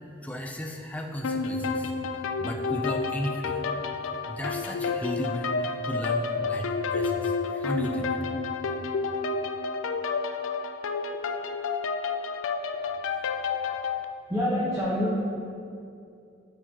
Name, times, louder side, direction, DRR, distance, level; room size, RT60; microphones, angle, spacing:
voice 1, 0.2-3.6 4.3-8.2, equal, 10° left, 1 dB, 0.6 m, -34 dB
sound 1, 1.2-14.0, left 4 dB, 90° left, 0.4 m, -30 dB
voice 2, 12.8-13.2 14.3-15.1, equal, 15° right, -9 dB, 1.2 m, -27 dB
12.5 x 4.8 x 3.0 m, 2.5 s
head